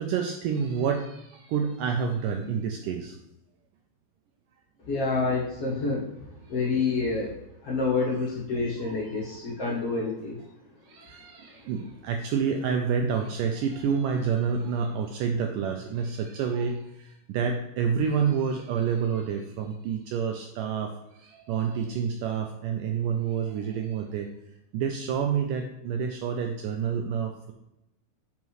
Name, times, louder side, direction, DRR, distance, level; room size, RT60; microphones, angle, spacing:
voice 1, 0.0-3.2 8.8-8.9 9.2-9.4 9.7-9.8 10.8-24.3 24.7-27.5, right 6 dB, 85° right, 3 dB, 1.9 m, -28 dB
voice 2, 4.8-6.1 6.5-7.3 7.6-10.4, left 4 dB, 55° left, -4 dB, 1.8 m, -27 dB
9.3 x 5.3 x 3.2 m, 0.86 s
omnidirectional pair, 4.4 m